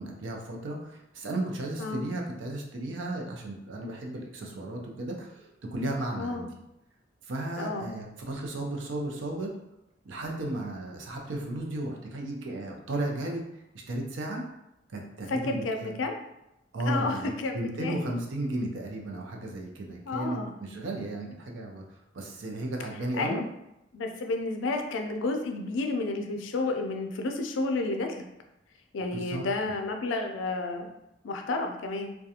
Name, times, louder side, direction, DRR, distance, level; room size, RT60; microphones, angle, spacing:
voice 1, 0.0-6.4 7.3-9.5 10.0-13.5 13.9-14.4 14.9-16.0 16.7-21.8 22.1-23.4 29.1-29.4, right 1 dB, 80° right, 0 dB, 0.5 m, -34 dB
voice 2, 6.2-6.5 7.6-7.9 15.3-16.1 16.9-17.9 20.1-20.5 23.2-23.5 23.9-28.2 28.9-30.9 31.2-32.2, left 3 dB, 80° left, 4 dB, 0.4 m, -31 dB
2.4 x 2.2 x 2.7 m, 0.86 s
head